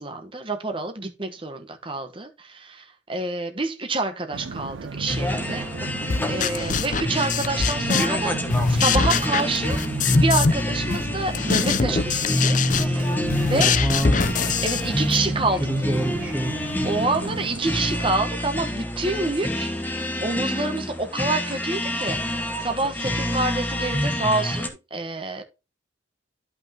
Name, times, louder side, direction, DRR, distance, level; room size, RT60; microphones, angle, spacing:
voice 1, 0.0-5.7 6.3-9.8 10.1-13.1 13.4-13.7 14.6-15.7 16.8-25.4, right 3 dB, 25° right, 1.2 m, -28 dB
sound 1, 4.3-18.1, right 4 dB, 80° right, 0.5 m, -35 dB
sound 2, 5.1-24.7, left 1 dB, 10° left, 1.0 m, -27 dB
sound 3, 6.1-8.2 8.5-10.6 10.9-15.2, left 5 dB, 40° left, 0.5 m, -23 dB
voice 2, 13.5-14.3 15.5-16.7, equal, 10° right, 0.5 m, -26 dB
11.5 x 5.6 x 2.9 m
head